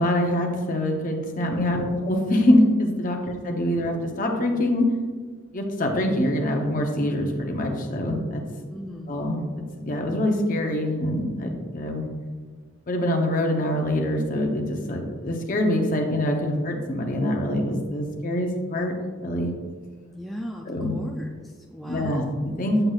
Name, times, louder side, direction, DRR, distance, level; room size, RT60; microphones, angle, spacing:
voice 1, 0.0-4.9 5.5-8.4 9.1-12.0 12.9-18.9 19.2-19.5 20.7-21.0 21.9-22.9, left 1 dB, 40° left, 2 dB, 0.8 m, -24 dB
voice 2, 8.7-9.1 20.1-20.6 20.9-22.4, equal, ahead, -1 dB, 0.3 m, -37 dB
7.7 x 5.9 x 2.4 m, 1.5 s
head